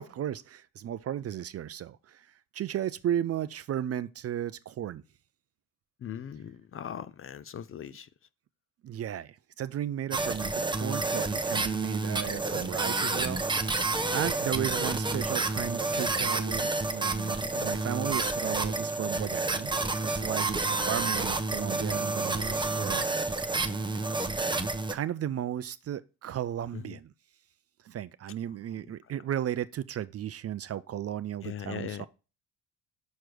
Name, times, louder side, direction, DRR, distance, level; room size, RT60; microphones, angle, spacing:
voice 1, 0.0-5.0 8.8-13.7 14.1-19.7 20.0-23.0 24.9-27.1 27.8-32.1, right 11 dB, 40° right, 0.4 m, -35 dB
voice 2, 6.0-8.1 17.4-17.7 20.6-20.8 26.7-27.0 31.4-32.1, left 9 dB, 35° left, 0.5 m, -40 dB
sound 1, 10.1-24.9, right 3 dB, 10° right, 0.8 m, -29 dB
6.4 x 4.5 x 4.9 m
supercardioid pair, 70°, 40 cm